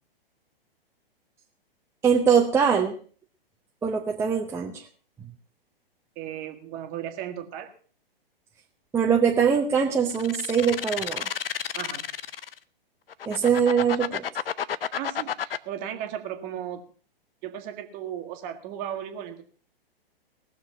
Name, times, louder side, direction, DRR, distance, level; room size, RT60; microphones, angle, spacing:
voice 1, 2.0-3.0 3.8-4.8 8.9-11.3 13.3-14.2, right 7 dB, 10° right, 0 dB, 0.7 m, -22 dB
voice 2, 6.1-7.7 11.8-12.0 15.0-16.8 17.4-19.4, right 10 dB, 30° right, 7 dB, 1.5 m, -35 dB
sound 1, 10.1-12.6 13.1-15.6, left 8 dB, 70° left, 0.6 m, -31 dB
19.0 x 6.8 x 5.6 m, 0.43 s
figure-of-eight pair, 115°, 30 cm